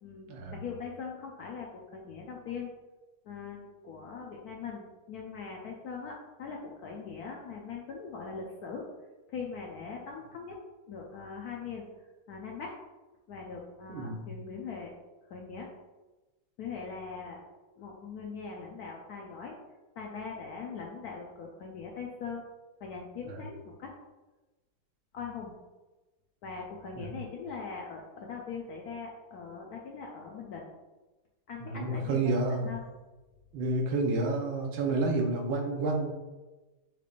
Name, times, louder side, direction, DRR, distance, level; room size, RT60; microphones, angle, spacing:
voice 1, 0.0-2.7 3.3-8.9 9.3-10.6 10.9-11.9 12.3-12.7 13.3-14.9 15.3-15.7 16.6-17.4 17.8-19.6 20.0-22.4 22.8-23.9 25.1-25.5 26.4-30.7 31.5-32.2 32.6-32.8, left 5 dB, 75° left, -1 dB, 0.9 m, -41 dB
voice 2, 13.9-14.2 23.3-23.4 27.0-27.1 31.6-32.7 33.5-36.1, right 2 dB, 85° right, 1 dB, 1.6 m, -30 dB
6.5 x 3.3 x 2.4 m, 1.2 s
omnidirectional pair, 2.1 m